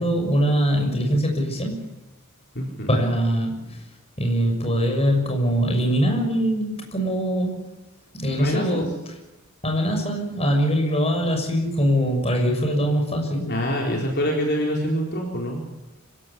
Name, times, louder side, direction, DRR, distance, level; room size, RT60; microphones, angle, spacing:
voice 1, 0.0-1.9 2.9-3.8 4.2-7.6 8.1-9.0 9.6-13.6, equal, 30° left, 2 dB, 6.3 m, -22 dB
voice 2, 2.5-2.9 8.4-8.8 13.5-15.6, equal, 50° left, -1 dB, 4.3 m, -25 dB
26.5 x 17.0 x 8.5 m, 0.99 s
head